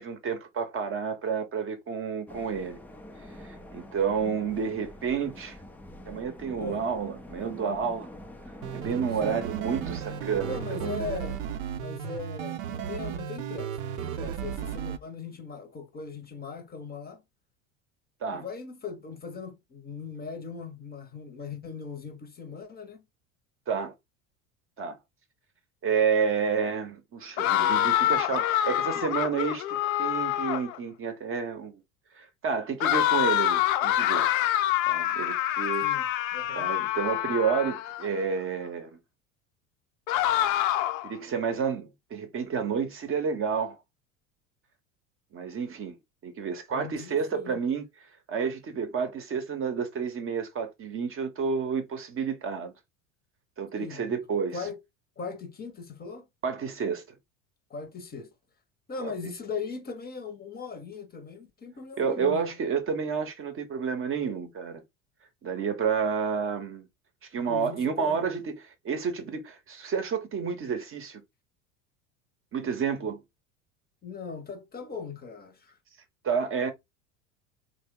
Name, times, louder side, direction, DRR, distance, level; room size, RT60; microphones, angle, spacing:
voice 1, 0.0-2.8 3.7-5.6 6.1-8.1 8.7-11.0 18.2-18.4 23.7-23.9 24.8-25.0 25.8-29.6 30.0-31.8 32.2-34.3 34.9-35.9 36.5-39.0 41.0-43.8 45.3-46.0 46.2-47.8 48.3-52.7 53.6-54.6 56.4-57.0 59.0-59.1 62.0-64.8 65.4-66.8 67.3-71.2 72.5-73.2 76.2-76.7, right 6 dB, 30° right, 0.7 m, -30 dB
sound 1, 2.3-10.7, left 1 dB, 5° left, 0.3 m, -45 dB
sound 2, 8.6-15.0, right 9 dB, 75° right, 0.6 m, -35 dB
voice 2, 10.4-11.4 11.7-17.2 18.3-23.0 35.8-36.1 36.3-36.7 46.7-47.6 53.8-54.2 54.5-54.8 55.2-56.3 57.7-58.3 58.9-62.5 67.5-68.2 74.0-75.8, left 5 dB, 25° left, 0.7 m, -39 dB
sound 3, 27.4-30.8 32.8-38.1 40.1-41.1, left 12 dB, 75° left, 0.6 m, -26 dB
2.9 x 2.0 x 3.5 m
hypercardioid pair, 80°, 41 cm